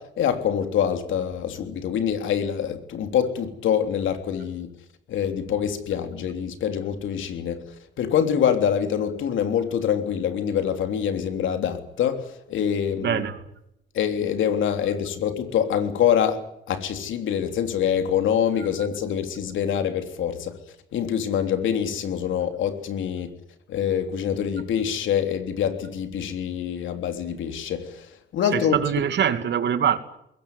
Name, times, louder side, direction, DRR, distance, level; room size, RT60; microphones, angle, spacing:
voice 1, 0.0-4.7 5.1-7.6 8.0-13.2 13.9-16.4 16.7-20.6 20.9-23.3 23.7-28.8, left 8 dB, 75° left, 3.4 m, -25 dB
voice 2, 13.0-13.4 18.8-18.9 28.5-30.0, right 8 dB, 60° right, 2.5 m, -23 dB
21.5 x 17.5 x 9.7 m
cardioid pair, 90°, 20 cm